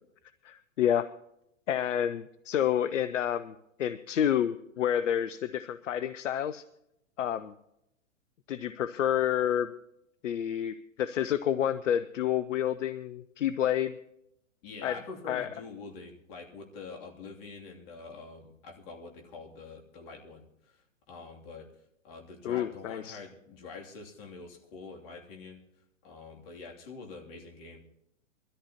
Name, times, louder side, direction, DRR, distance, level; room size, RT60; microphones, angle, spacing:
voice 1, 0.4-1.1 1.7-6.6 7.2-7.5 8.5-9.7 10.2-14.0 14.8-15.0 15.3-15.5 22.4-23.2, left 10 dB, 70° left, 14 dB, 0.7 m, -29 dB
voice 2, 14.6-20.5 20.7-20.8 21.1-21.7 22.0-25.6 26.0-27.8, left 4 dB, 45° left, 1 dB, 2.9 m, -45 dB
22.5 x 13.5 x 2.9 m, 0.81 s
figure-of-eight pair, 115°, 38 cm